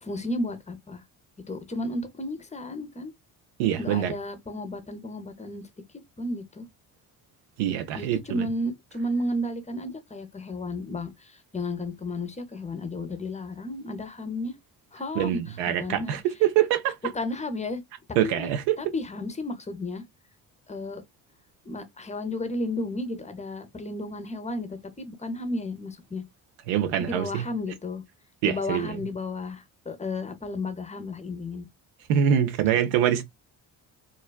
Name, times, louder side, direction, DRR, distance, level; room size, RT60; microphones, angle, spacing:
voice 1, 0.0-1.0 1.5-3.1 3.8-5.6 6.2-6.7 7.9-14.5 14.9-16.2 17.1-17.8 18.2-18.5 18.8-20.0 20.7-21.0 21.7-26.2 27.0-28.0 28.4-31.7 32.7-32.9, left 1 dB, 15° left, 0.6 m, -33 dB
voice 2, 3.6-4.1 7.6-8.5 15.2-16.9 18.2-18.8 26.7-27.5 28.4-28.9 32.1-33.2, right 10 dB, 80° right, 0.6 m, -24 dB
2.4 x 2.2 x 2.3 m
hypercardioid pair, 55°, 45 cm